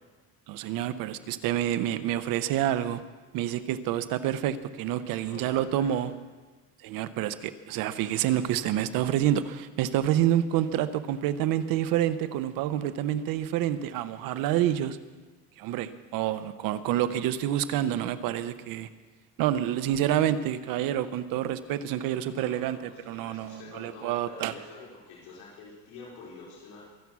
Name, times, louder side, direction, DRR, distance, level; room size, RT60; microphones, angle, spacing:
voice 1, 0.5-3.0 3.3-6.1 6.8-15.0 15.6-18.9 19.4-24.5, right 11 dB, 65° right, 12 dB, 0.9 m, -28 dB
voice 2, 5.0-6.1 22.3-26.8, left 3 dB, 70° left, -5 dB, 4.3 m, -47 dB
23.5 x 8.4 x 6.2 m, 1.3 s
cardioid pair, 155°, 37 cm